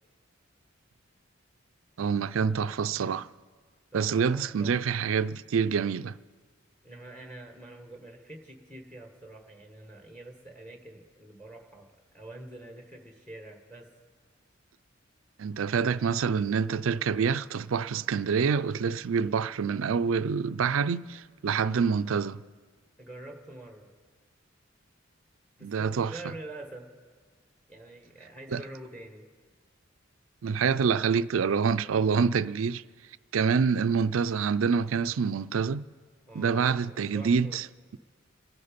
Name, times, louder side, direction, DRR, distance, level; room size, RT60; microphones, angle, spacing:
voice 1, 2.0-3.3 3.9-6.1 15.4-22.4 25.6-26.1 28.5-28.6 30.4-32.8 33.3-35.8 36.3-37.6, right 6 dB, 80° right, 0.4 m, -26 dB
voice 2, 3.9-4.9 6.8-13.9 23.0-23.9 25.6-26.9 27.7-29.3 36.3-37.6, right 1 dB, 5° left, 1.5 m, -46 dB
27.5 x 9.6 x 5.2 m
head